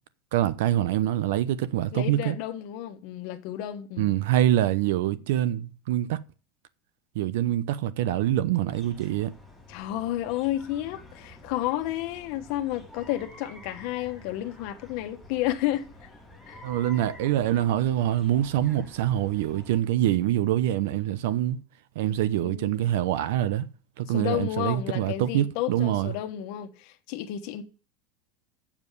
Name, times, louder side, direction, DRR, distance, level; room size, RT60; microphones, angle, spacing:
voice 1, 0.3-2.4 4.0-6.2 7.1-9.3 16.6-21.6 22.0-23.7 24.0-26.1, right 12 dB, 70° right, 0.8 m, -25 dB
voice 2, 1.9-4.2 9.7-15.9 16.5-16.6 22.1-22.7 24.1-27.6, left 13 dB, 50° left, 1.3 m, -31 dB
sound 1, 8.7-19.8, left 1 dB, ahead, 3.3 m, -49 dB
7.5 x 7.2 x 8.3 m
supercardioid pair, 170°, 0 cm